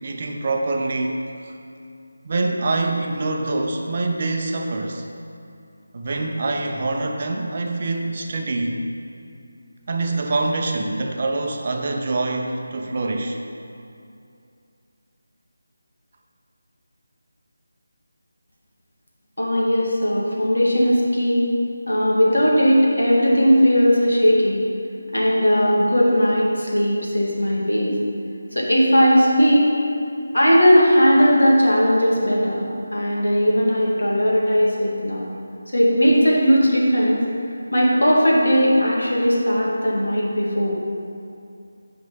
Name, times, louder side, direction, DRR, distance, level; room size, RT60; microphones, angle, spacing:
voice 1, 0.0-1.5 2.2-5.0 5.9-8.8 9.9-13.4, right 2 dB, 35° right, 2 dB, 0.8 m, -25 dB
voice 2, 19.4-21.5 21.9-24.6 25.1-27.9 28.5-29.7 30.3-35.2 35.7-37.3 37.7-40.8, equal, 70° left, -4 dB, 2.4 m, -18 dB
9.1 x 6.0 x 5.7 m, 2.5 s
figure-of-eight pair, 160°, 0 cm